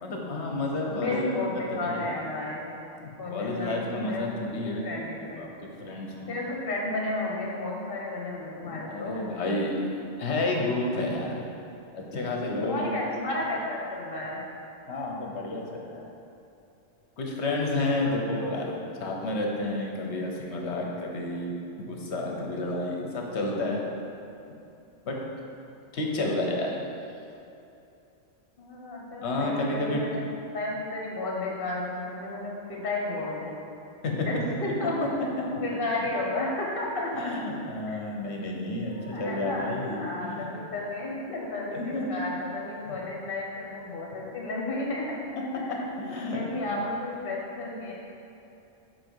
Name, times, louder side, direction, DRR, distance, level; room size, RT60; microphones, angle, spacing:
voice 1, 0.0-1.3 1.7-2.1 3.0-4.9 5.3-6.3 8.7-9.7 10.2-11.4 11.9-13.0 14.9-16.0 17.2-23.8 25.0-25.2 25.9-26.7 29.2-30.1 34.0-34.3 37.1-40.5 41.7-42.1 42.9-43.0 45.7-46.8, left 2 dB, 65° left, 0 dB, 1.1 m, -31 dB
voice 2, 0.9-2.7 3.2-4.2 4.6-5.5 6.3-9.3 12.6-14.4 17.9-18.5 28.6-30.2 30.5-33.6 34.1-35.0 35.5-37.3 37.9-38.0 38.9-47.9, left 2 dB, 50° left, -2 dB, 1.4 m, -33 dB
7.5 x 4.6 x 4.7 m, 2.8 s
omnidirectional pair, 1.3 m